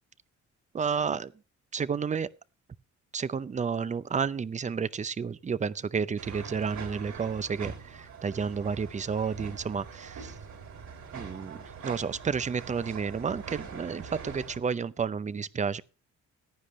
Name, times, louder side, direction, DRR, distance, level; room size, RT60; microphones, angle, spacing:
voice 1, 0.7-1.3 1.7-2.3 3.1-10.3 11.1-15.8, right 6 dB, 25° right, 0.5 m, -31 dB
sound 1, 6.2-14.6, right 6 dB, 70° right, 3.5 m, -43 dB
15.0 x 9.8 x 3.1 m
cardioid pair, 90°, 30 cm